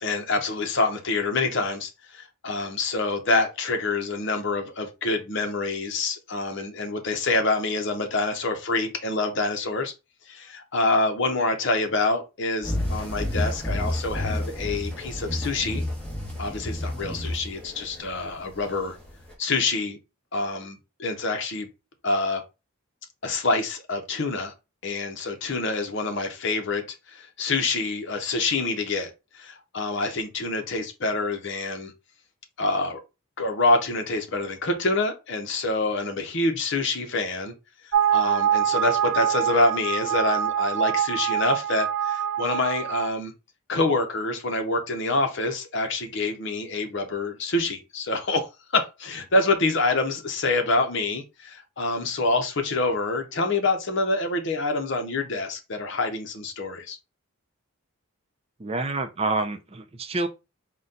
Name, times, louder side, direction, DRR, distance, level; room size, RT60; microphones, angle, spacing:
voice 1, 0.0-9.9 10.3-15.8 16.4-19.0 19.4-20.0 20.3-21.7 22.0-22.4 23.2-24.5 24.8-31.9 32.6-33.0 33.4-37.5 37.8-43.3 43.7-57.0, left 2 dB, 55° left, 0.7 m, -26 dB
sound 1, 12.6-19.3, left 1 dB, 5° left, 1.0 m, -30 dB
sound 2, 37.9-43.1, right 9 dB, 85° right, 0.5 m, -24 dB
voice 2, 58.6-60.3, right 3 dB, 25° right, 0.4 m, -27 dB
4.0 x 2.2 x 3.8 m
head